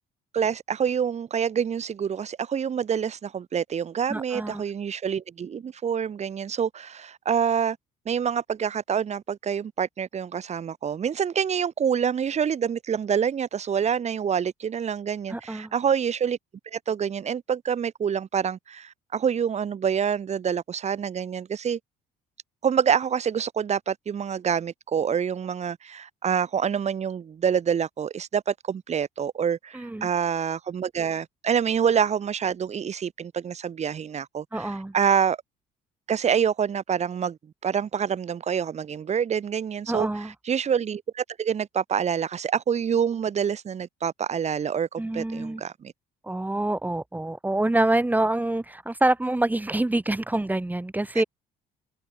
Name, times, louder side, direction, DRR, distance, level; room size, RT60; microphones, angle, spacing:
voice 1, 0.3-7.8 8.0-16.4 16.7-21.8 22.6-35.4 36.1-37.4 37.6-40.1 40.4-45.9, right 7 dB, 40° right, 3.2 m, -26 dB
voice 2, 4.1-4.6 15.3-15.7 29.7-30.1 34.5-34.9 39.9-40.3 45.0-45.6 46.2-51.2, right 2 dB, 10° right, 6.8 m, -26 dB
cardioid pair, 110°, 17 cm